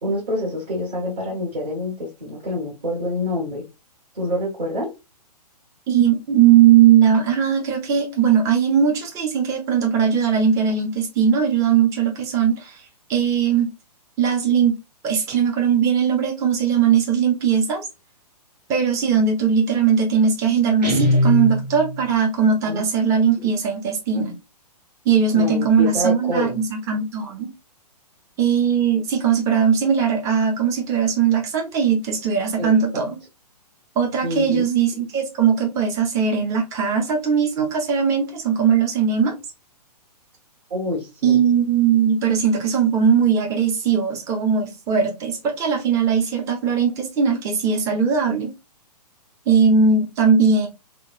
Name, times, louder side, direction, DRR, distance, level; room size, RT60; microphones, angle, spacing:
voice 1, 0.0-3.6 4.1-4.9 22.7-22.8 25.3-26.6 32.6-32.7 34.2-34.6 40.7-41.4, left 1 dB, 35° right, 1.5 m, -26 dB
voice 2, 5.9-12.8 13.1-13.7 14.2-14.8 15.0-17.8 18.7-24.3 25.0-27.5 28.4-33.1 34.0-39.4 41.2-48.5 49.5-50.7, right 7 dB, 15° right, 0.5 m, -19 dB
Guitar, 20.8-22.1, equal, 85° right, 0.9 m, -20 dB
2.9 x 2.0 x 2.4 m
figure-of-eight pair, 125°, 21 cm